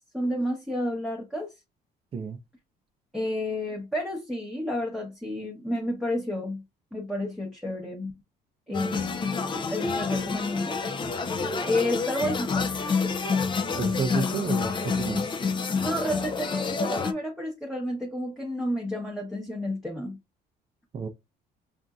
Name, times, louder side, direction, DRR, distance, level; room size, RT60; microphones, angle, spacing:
voice 1, 0.1-1.5 3.1-6.6 6.9-8.1 8.7-10.9 11.6-12.7 15.8-20.2, left 1 dB, ahead, 0.9 m, -31 dB
sound 1, 8.7-17.1, left 4 dB, 30° left, 0.5 m, -28 dB
voice 2, 13.7-15.3 20.9-21.1, right 5 dB, 35° right, 0.5 m, -30 dB
5.0 x 2.6 x 2.3 m
cardioid pair, 110°, 17 cm